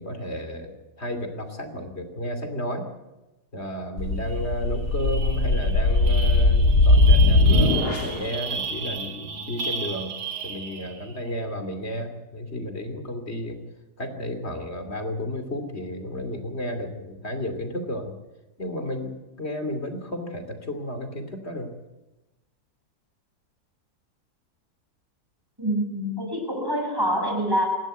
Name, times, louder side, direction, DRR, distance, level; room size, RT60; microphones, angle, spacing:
voice 1, 0.0-2.9 3.5-10.2 10.4-13.6 14.0-18.2 18.6-21.7, equal, 40° left, 7 dB, 3.1 m, -32 dB
sound 1, 4.0-8.3, left 2 dB, 80° left, 2.8 m, -19 dB
sound 2, 4.3-4.4 4.7-11.2, right 6 dB, 85° right, 2.3 m, -34 dB
voice 2, 25.6-27.7, equal, 15° right, 0 dB, 7.5 m, -26 dB
27.0 x 12.5 x 8.2 m, 1.0 s
omnidirectional pair, 1.7 m